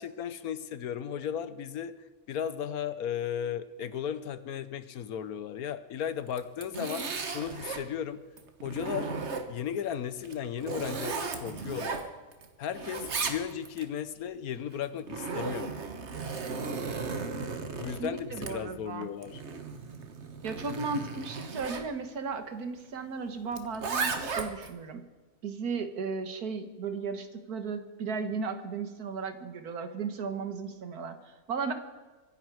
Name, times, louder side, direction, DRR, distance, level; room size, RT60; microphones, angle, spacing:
voice 1, 0.0-1.9 2.3-8.2 8.6-9.1 9.5-12.0 12.6-15.7 17.8-19.4, left 8 dB, 75° left, 13 dB, 1.3 m, -35 dB
Zipper (clothing), 6.3-7.9 8.4-9.7 10.2-12.5 12.7-13.9 14.7-21.9 23.5-24.7, right 4 dB, 50° right, 1.6 m, -35 dB
voice 2, 18.0-19.1 20.4-25.0 25.4-31.7, right 5 dB, 80° right, 8 dB, 1.9 m, -35 dB
24.5 x 10.5 x 4.8 m, 1.3 s
omnidirectional pair, 1.6 m